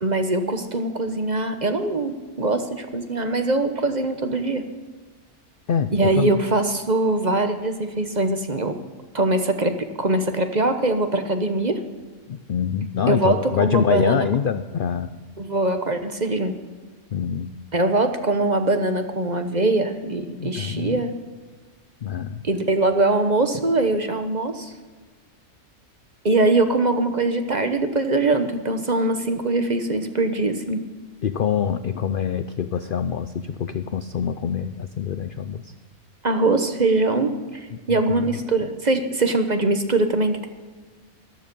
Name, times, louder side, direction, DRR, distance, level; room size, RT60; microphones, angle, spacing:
voice 1, 0.0-4.6 5.9-8.7 9.1-11.8 13.1-14.3 15.4-16.6 17.7-21.1 22.4-24.7 26.2-30.8 36.2-40.5, right 2 dB, 35° right, 7 dB, 0.9 m, -22 dB
voice 2, 5.7-6.4 12.3-15.1 17.1-17.5 20.4-21.0 22.0-22.4 31.2-35.7 37.7-38.3, left 7 dB, 70° left, 11 dB, 0.5 m, -25 dB
13.5 x 13.0 x 5.3 m, 1.4 s
omnidirectional pair, 1.6 m